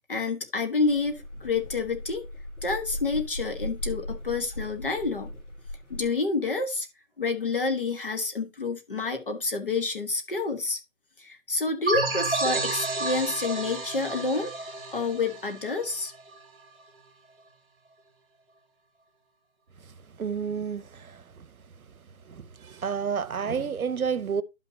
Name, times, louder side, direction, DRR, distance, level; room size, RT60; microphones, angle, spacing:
voice 1, 0.1-2.2 2.6-5.3 5.9-6.9 7.2-10.8 11.2-14.5 14.9-16.1, left 3 dB, 40° left, 1.5 m, -28 dB
sound 1, 0.8-6.1, left 1 dB, 60° left, 3.8 m, -38 dB
sound 2, 11.9-16.3, right 2 dB, 40° right, 2.2 m, -30 dB
voice 2, 19.8-21.5 22.2-24.4, right 6 dB, 90° right, 0.9 m, -31 dB
11.5 x 5.7 x 2.7 m
figure-of-eight pair, 175°, 41 cm